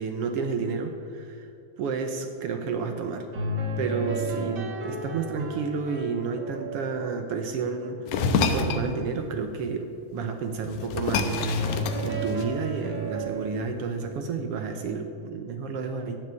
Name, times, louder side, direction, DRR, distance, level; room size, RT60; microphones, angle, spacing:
voice 1, 0.0-1.5 1.8-3.3 3.8-11.8 12.0-16.2, right 5 dB, 75° right, 6 dB, 1.4 m, -31 dB
sound 1, 3.3-8.6 11.4-13.5, right 1 dB, 40° right, 1.7 m, -33 dB
sound 2, 8.1-8.9 10.2-10.3 10.6-12.7, left 5 dB, 70° left, 1.9 m, -27 dB
13.0 x 7.6 x 8.2 m, 2.6 s
omnidirectional pair, 3.6 m